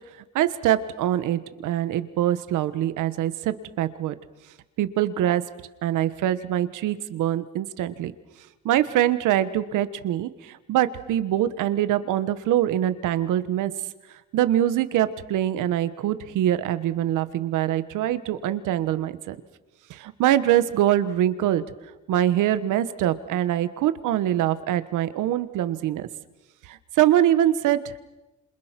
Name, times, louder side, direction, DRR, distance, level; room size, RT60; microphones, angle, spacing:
voice 1, 0.3-4.1 4.8-5.4 5.8-8.1 8.6-13.7 14.3-19.4 19.9-21.6 22.1-26.1 26.6-28.0, right 12 dB, 90° right, 13 dB, 1.4 m, -24 dB
28.0 x 27.5 x 6.0 m, 1.1 s
cardioid pair, 90°, 30 cm